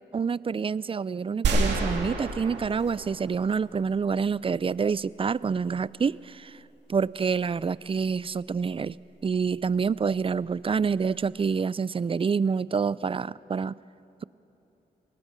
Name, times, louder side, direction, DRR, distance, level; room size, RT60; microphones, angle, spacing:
voice 1, 0.1-6.6 6.9-8.9 9.2-13.7, right 5 dB, 30° right, 20 dB, 0.4 m, -27 dB
sound 1, 1.4-3.8, right 3 dB, 85° right, 2.4 m, -28 dB
22.5 x 18.5 x 6.2 m, 3.0 s
supercardioid pair, 50°, 18 cm